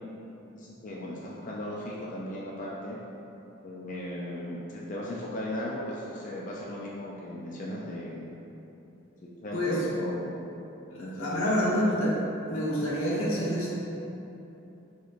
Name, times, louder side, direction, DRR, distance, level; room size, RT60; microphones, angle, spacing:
voice 1, 0.5-3.0 3.6-8.3 9.2-10.3 11.0-11.7, left 1 dB, 40° left, -4 dB, 0.4 m, -37 dB
voice 2, 9.5-9.9 10.9-12.2 12.5-13.7, equal, 85° left, -6 dB, 1.0 m, -27 dB
6.4 x 3.0 x 2.5 m, 2.9 s
head